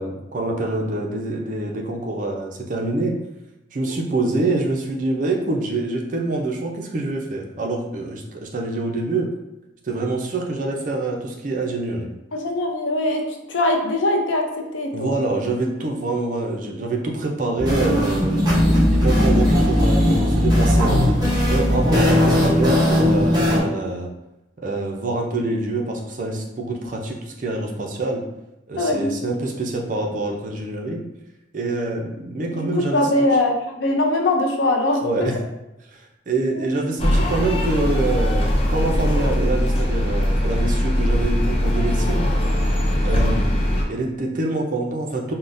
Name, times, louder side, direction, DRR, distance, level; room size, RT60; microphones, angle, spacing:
voice 1, 0.0-3.1 3.7-9.3 9.8-12.1 14.9-24.1 24.6-28.2 28.7-31.0 31.5-33.2 35.0-35.4 35.9-36.0 36.3-42.3 43.0-43.6 43.9-45.3, right 2 dB, 45° right, 0 dB, 0.4 m, -25 dB
voice 2, 12.3-15.1 28.8-29.3 32.6-35.3 36.5-36.7, left 2 dB, 85° left, 2 dB, 0.5 m, -22 dB
sound 1, 17.6-23.6, equal, 20° right, 0.8 m, -18 dB
sound 2, 37.0-43.8, equal, 30° left, 0.4 m, -20 dB
3.7 x 2.1 x 2.5 m, 0.94 s
head